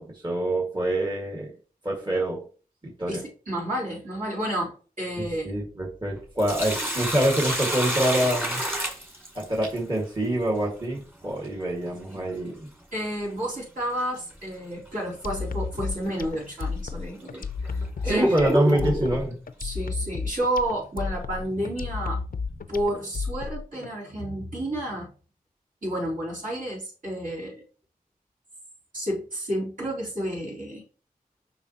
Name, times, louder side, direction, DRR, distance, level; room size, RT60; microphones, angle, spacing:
voice 1, 0.0-1.5 1.8-2.4 2.8-3.2 5.2-8.6 9.4-12.7 18.0-19.4, right 1 dB, 30° right, 1.9 m, -26 dB
voice 2, 3.1-5.5 12.0-12.2 12.9-17.4 18.0-19.0 19.6-22.2 22.5-25.1 25.8-27.6 28.9-30.9, right 1 dB, 60° right, 3.7 m, -31 dB
Sink (filling or washing), 6.2-9.8 12.2-12.3 14.1-14.4 14.9-15.0 15.7-15.9 16.6-16.7 17.3-19.2, equal, 15° right, 2.1 m, -28 dB
sound 1, 15.2-23.9, left 4 dB, 70° left, 0.5 m, -32 dB
7.0 x 5.7 x 2.9 m
wide cardioid pair, 70°, 15 cm